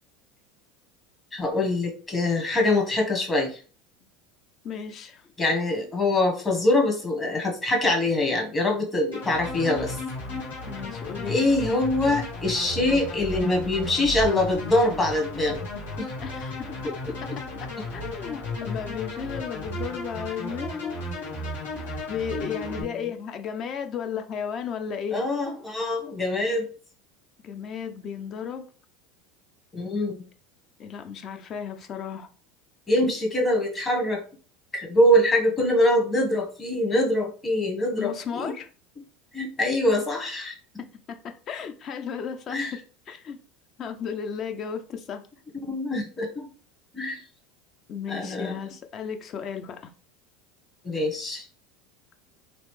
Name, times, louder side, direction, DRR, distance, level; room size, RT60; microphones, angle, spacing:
voice 1, 1.3-3.6 5.4-10.0 11.3-15.7 16.0-16.1 22.8-23.0 25.1-26.7 29.7-30.3 32.9-34.2 34.7-38.5 39.3-40.6 42.5-42.8 45.7-46.5 46.9-47.2 48.1-48.6 50.8-51.4, left 1 dB, 25° left, 1 dB, 1.2 m, -24 dB
voice 2, 4.6-5.2 10.7-11.5 16.2-16.9 17.6-21.0 22.1-25.2 27.4-28.6 30.8-32.3 38.0-38.7 40.8-42.8 43.1-43.4 43.8-45.2 47.9-49.9, left 7 dB, 45° left, 7 dB, 0.6 m, -34 dB
sound 1, 9.1-22.8, left 1 dB, 85° left, 1.5 m, -34 dB
3.1 x 2.5 x 3.1 m, 0.39 s
hypercardioid pair, 95°, 0 cm